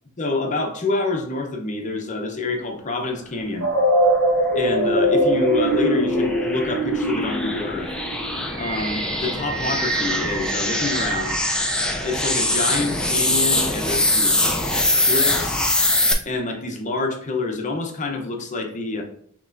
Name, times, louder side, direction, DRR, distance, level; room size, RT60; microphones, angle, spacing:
voice 1, 0.2-3.7 4.5-7.9 8.5-11.4 12.0-14.4 14.9-15.7 16.3-19.0, left 3 dB, 35° left, 2 dB, 0.7 m, -27 dB
sound 1, 3.6-12.6, right 1 dB, 55° right, 0.8 m, -23 dB
sound 2, 4.6-16.1, left 1 dB, 5° left, 0.4 m, -23 dB
6.4 x 3.0 x 2.5 m, 0.66 s
head